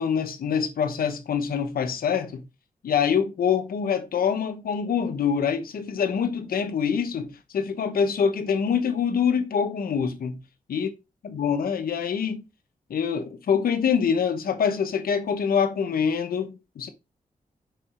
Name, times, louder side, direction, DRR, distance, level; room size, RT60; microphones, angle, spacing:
voice 1, 0.0-2.4 2.8-10.4 10.7-10.9 11.2-12.4 12.9-16.9, left 7 dB, 85° left, 0.9 m, -25 dB
5.2 x 4.9 x 4.3 m
cardioid pair, 65°, 15 cm